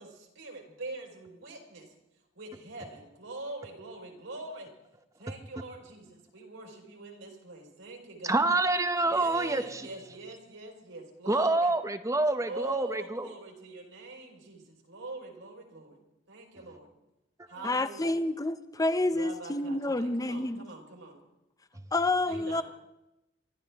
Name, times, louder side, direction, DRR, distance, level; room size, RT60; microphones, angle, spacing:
voice 1, 0.0-1.9 2.3-4.7 5.2-8.4 9.1-11.7 12.4-16.0 16.3-16.9 17.5-18.2 19.1-21.2 22.2-22.6, right 2 dB, 80° right, 4.4 m, -43 dB
voice 2, 8.2-9.9 11.3-13.3, right 2 dB, 15° right, 0.8 m, -27 dB
voice 3, 17.6-20.7 21.9-22.6, left 2 dB, 20° left, 0.6 m, -29 dB
25.5 x 13.0 x 3.5 m
head